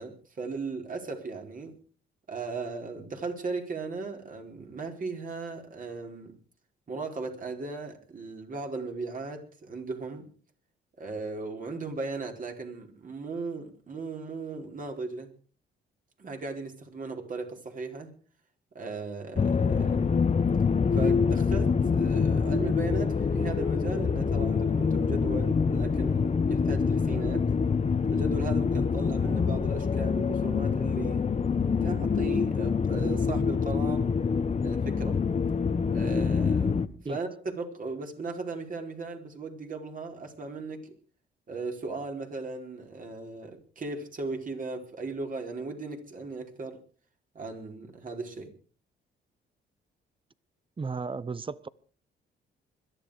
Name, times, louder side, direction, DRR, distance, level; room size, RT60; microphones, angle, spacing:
voice 1, 0.0-1.8 2.3-6.3 6.9-10.3 11.0-15.3 16.2-18.1 18.7-20.2 20.9-27.5 28.1-31.2 31.8-34.1 34.6-35.2 35.9-36.8 37.1-37.3 37.6-40.9 41.5-46.8 47.3-48.5, right 3 dB, 45° right, 4.6 m, -37 dB
sound 1, 19.4-36.9, left 5 dB, 35° left, 1.2 m, -26 dB
voice 2, 50.8-51.7, right 4 dB, 25° right, 1.0 m, -34 dB
21.5 x 13.5 x 5.0 m
cardioid pair, 90°, 20 cm